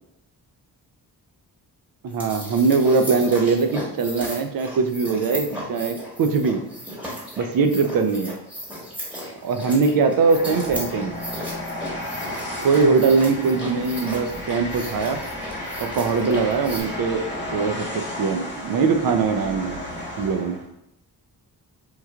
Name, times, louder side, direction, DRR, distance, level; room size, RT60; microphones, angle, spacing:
voice 1, 2.0-6.6 7.4-8.4 9.4-11.1 12.6-15.2 15.8-17.2 17.5-19.8 20.2-20.6, right 4 dB, 55° right, 6 dB, 0.5 m, -21 dB
sound 1, 2.1-16.8, equal, 5° right, 1.1 m, -36 dB
Train, 10.2-20.7, left 1 dB, 25° left, 1.0 m, -33 dB
3.1 x 2.2 x 2.3 m, 0.84 s
supercardioid pair, 45°, 43 cm